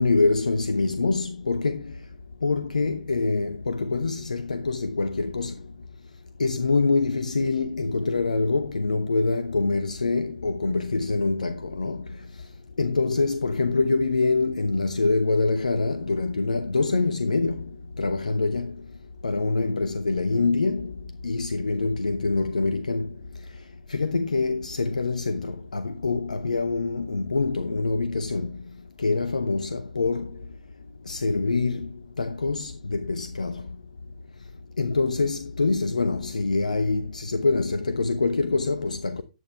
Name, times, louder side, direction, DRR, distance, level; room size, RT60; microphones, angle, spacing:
voice 1, 0.0-2.0 2.4-5.6 6.4-12.3 12.8-18.9 19.2-23.2 23.5-23.6 23.9-28.6 29.0-30.5 31.1-33.7 34.8-39.2, left 3 dB, 75° left, 1.0 m, -25 dB
14.0 x 9.1 x 3.3 m
figure-of-eight pair, 120°, 4 cm